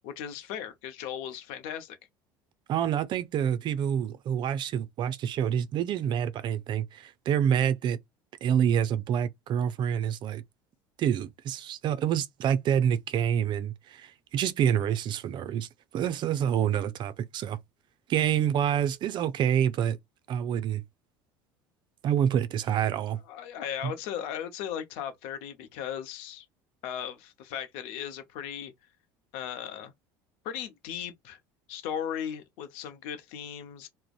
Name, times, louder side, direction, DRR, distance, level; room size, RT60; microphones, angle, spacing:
voice 1, 0.0-2.0 23.3-26.5 26.8-28.7 29.3-29.9 30.4-31.4 31.7-33.9, left 9 dB, 70° left, 0.6 m, -37 dB
voice 2, 2.7-8.0 8.4-10.4 11.0-15.7 15.9-17.6 18.1-20.0 20.3-20.8 22.0-23.2 23.8-23.9, right 9 dB, 45° right, 0.4 m, -27 dB
2.5 x 2.1 x 2.3 m
supercardioid pair, 95°, 10 cm